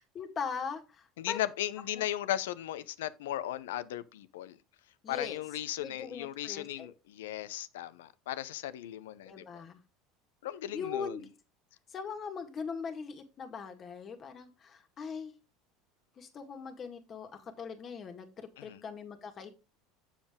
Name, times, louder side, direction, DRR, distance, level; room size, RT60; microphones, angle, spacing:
voice 1, 0.2-1.4 2.0-2.1 5.0-5.4 5.8-6.9 9.3-9.8 10.7-11.3 11.9-15.3 16.2-19.5, left 6 dB, 40° left, 1.8 m, -40 dB
voice 2, 1.2-4.6 5.1-9.6 10.4-11.2 18.6-18.8, left 13 dB, 85° left, 0.6 m, -37 dB
7.3 x 7.1 x 3.6 m
supercardioid pair, 95°, 0 cm